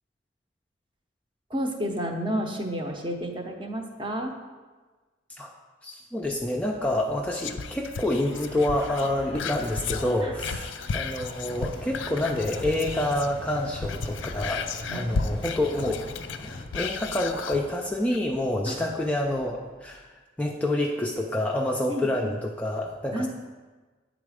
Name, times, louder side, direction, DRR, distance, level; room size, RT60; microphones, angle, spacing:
voice 1, 1.5-4.3 10.2-10.3 14.9-15.2 18.7-18.8 21.9-22.3 23.1-23.3, equal, 25° right, 3 dB, 0.7 m, -31 dB
voice 2, 5.8-16.0 16.4-20.1 20.4-23.3, left 1 dB, 5° left, 0 dB, 0.4 m, -28 dB
sound 1, 6.2-20.0, equal, 65° right, 0.7 m, -49 dB
Whispering, 7.4-13.4 13.7-17.6 18.1-18.2, left 5 dB, 75° left, 0.4 m, -34 dB
sound 2, 11.5-16.7, left 1 dB, 25° left, 0.8 m, -40 dB
8.5 x 4.0 x 4.9 m, 1.3 s
head